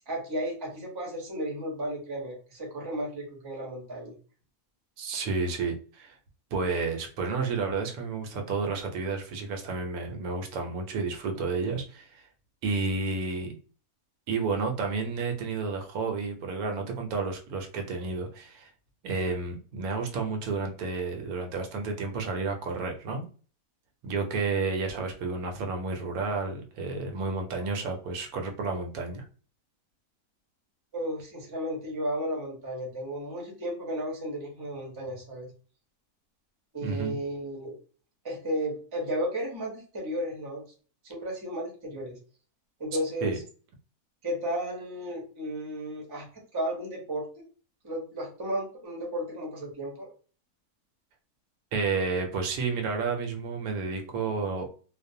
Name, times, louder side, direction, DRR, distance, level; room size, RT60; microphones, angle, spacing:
voice 1, 0.1-4.1 30.9-35.5 36.7-37.8 38.2-40.6 41.0-42.2 42.8-43.3 44.2-47.4 47.8-50.1, equal, 25° right, -1 dB, 0.5 m, -34 dB
voice 2, 5.0-6.2 6.5-12.3 12.6-13.6 14.3-18.7 19.0-23.3 24.0-29.3 36.8-37.2 43.2-43.4 51.7-54.7, right 4 dB, 75° right, 4 dB, 1.0 m, -31 dB
2.5 x 2.1 x 2.6 m, 0.39 s
omnidirectional pair, 1.6 m